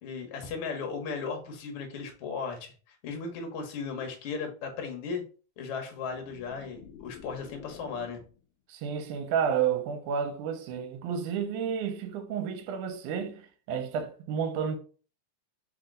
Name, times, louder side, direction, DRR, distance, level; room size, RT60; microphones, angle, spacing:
voice 1, 0.0-5.2 5.6-8.2, left 5 dB, 60° left, 1.6 m, -36 dB
sound 1, 5.9-8.5, left 9 dB, 85° left, 1.4 m, -49 dB
voice 2, 8.7-14.8, right 7 dB, 85° right, 2.1 m, -31 dB
4.5 x 2.9 x 3.7 m
omnidirectional pair, 3.5 m